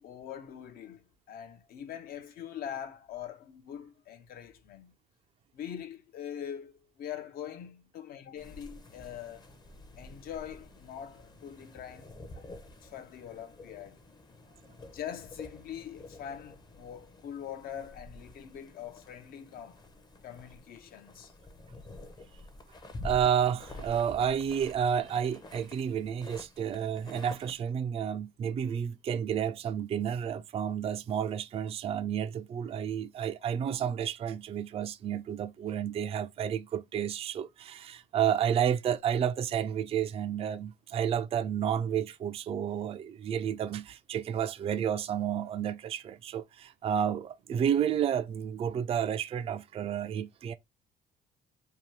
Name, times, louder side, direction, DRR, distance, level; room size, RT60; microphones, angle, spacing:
voice 1, 0.0-4.9 5.5-9.4 10.0-12.1 12.3-12.4 12.8-14.0 14.9-19.8 20.2-21.3, left 9 dB, 60° left, 0.6 m, -43 dB
sound 1, 8.4-27.6, left 2 dB, 25° left, 0.7 m, -49 dB
voice 2, 23.0-50.5, right 8 dB, 35° right, 0.4 m, -31 dB
2.8 x 2.3 x 3.1 m
cardioid pair, 110°, 17 cm